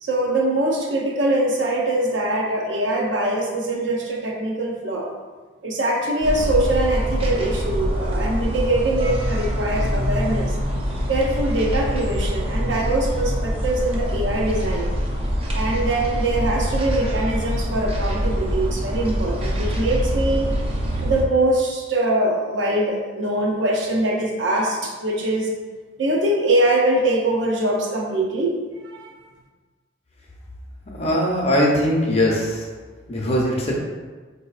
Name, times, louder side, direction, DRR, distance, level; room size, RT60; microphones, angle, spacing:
voice 1, 0.0-5.1 5.6-10.6 11.1-14.9 15.5-20.5 21.0-25.5 26.0-28.6 28.8-29.2, right 1 dB, 75° right, -1 dB, 0.6 m, -23 dB
sound 1, 6.2-21.2, equal, 30° right, 0.5 m, -24 dB
voice 2, 30.9-32.6 33.1-33.7, equal, 35° left, -3 dB, 0.6 m, -20 dB
4.0 x 2.8 x 2.3 m, 1.4 s
head